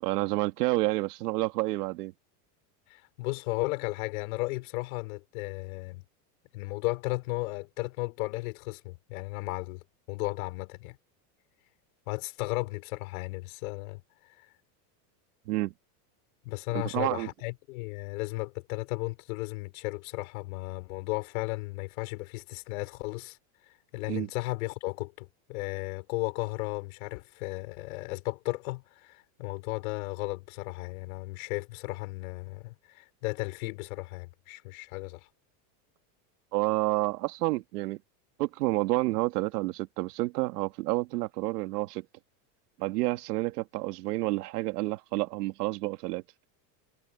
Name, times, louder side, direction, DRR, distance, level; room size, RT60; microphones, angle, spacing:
voice 1, 0.0-2.1 15.5-15.7 16.7-17.3 24.1-24.3 36.5-38.0 38.4-42.1 42.8-46.2, right 19 dB, 80° right, 2.1 m, -29 dB
voice 2, 2.9-6.0 6.5-11.0 12.1-14.0 16.4-23.4 23.9-35.3, left 23 dB, 65° left, 5.0 m, -35 dB
supercardioid pair, 175°, 46 cm